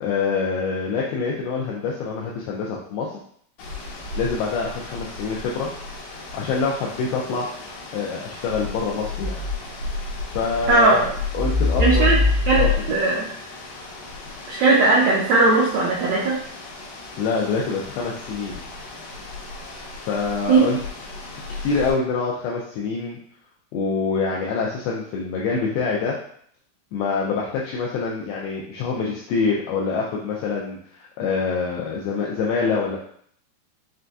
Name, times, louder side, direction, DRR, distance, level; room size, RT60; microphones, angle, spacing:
voice 1, 0.0-3.2 4.2-5.7 6.3-7.5 7.9-9.5 10.4-12.1 12.6-12.7 17.2-18.6 20.1-20.8 21.6-23.2 23.7-26.2 26.9-33.0, left 4 dB, 85° left, -2 dB, 2.2 m, -25 dB
sound 1, 3.6-21.9, left 3 dB, 70° left, 2.4 m, -30 dB
voice 2, 10.7-11.0 11.8-12.2 12.5-13.3 14.5-16.4 20.5-20.7, right 3 dB, 85° right, -5 dB, 2.0 m, -18 dB
6.5 x 2.5 x 2.3 m, 0.63 s
omnidirectional pair, 4.9 m